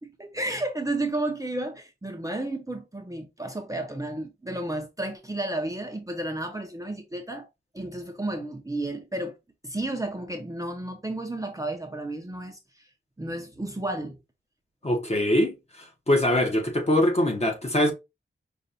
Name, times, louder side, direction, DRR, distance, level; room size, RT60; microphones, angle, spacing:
voice 1, 0.0-7.5 7.7-9.3 9.6-12.9 13.2-14.2, right 1 dB, 15° right, 0.6 m, -32 dB
voice 2, 14.8-17.9, left 1 dB, 30° left, 1.0 m, -23 dB
5.2 x 2.3 x 2.7 m
wide cardioid pair, 115°, 21 cm